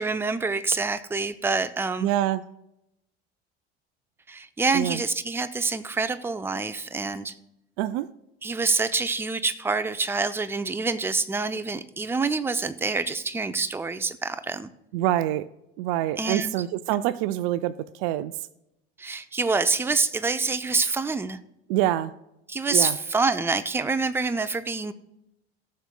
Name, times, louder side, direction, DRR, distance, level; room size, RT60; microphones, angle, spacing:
voice 1, 0.0-2.1 4.3-7.3 8.4-14.7 16.2-16.6 19.0-21.4 22.5-24.9, right 4 dB, 5° right, 11 dB, 0.6 m, -26 dB
voice 2, 2.0-2.4 4.7-5.0 7.8-8.1 14.9-15.5 15.8-18.3 21.7-22.1 22.7-23.0, right 13 dB, 60° right, 16 dB, 0.5 m, -25 dB
18.0 x 6.3 x 2.2 m, 0.85 s
figure-of-eight pair, 65°, 31 cm